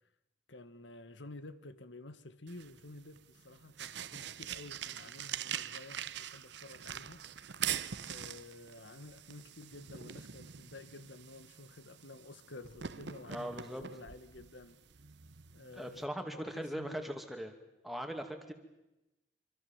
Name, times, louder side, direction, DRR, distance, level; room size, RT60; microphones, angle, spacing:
voice 1, 0.5-7.5 8.0-14.8 15.5-17.2, left 2 dB, 75° left, 12 dB, 1.7 m, -51 dB
sound 1, 2.5-16.1, right 9 dB, 65° right, 0.8 m, -44 dB
voice 2, 13.3-13.8 15.8-17.5 17.8-18.5, equal, ahead, 4 dB, 2.4 m, -40 dB
26.0 x 24.5 x 7.3 m, 0.98 s
head